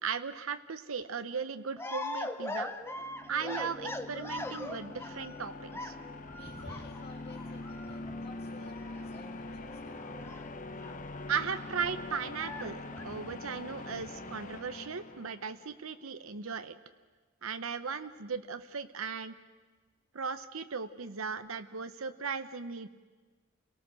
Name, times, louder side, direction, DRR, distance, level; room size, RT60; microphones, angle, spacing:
voice 1, 0.0-2.7 3.3-5.9 11.3-16.8 17.4-19.3 20.1-22.9, right 6 dB, 85° right, 10 dB, 0.9 m, -37 dB
sound 1, 1.8-5.5 5.7-11.0 11.3-11.4 11.7-13.6, left 1 dB, 10° left, 0.9 m, -42 dB
sound 2, 2.8-15.8, left 2 dB, 40° left, 1.0 m, -44 dB
voice 2, 6.4-10.3, left 3 dB, 55° left, -1 dB, 1.7 m, -53 dB
29.5 x 18.0 x 6.4 m, 1.4 s
head